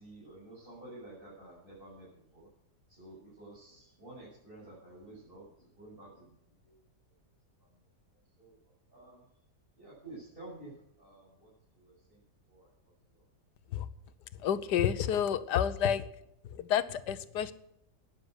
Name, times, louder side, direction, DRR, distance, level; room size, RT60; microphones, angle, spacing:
voice 1, 0.0-2.5 2.9-6.4 6.6-6.8 8.4-8.6 8.9-9.2 9.8-12.7 13.1-13.2, right 2 dB, 30° right, -9 dB, 7.5 m, -51 dB
voice 2, 14.4-16.0 16.5-17.5, left 9 dB, 80° left, 15 dB, 1.4 m, -29 dB
12.5 x 10.5 x 8.1 m, 0.79 s
omnidirectional pair, 1.8 m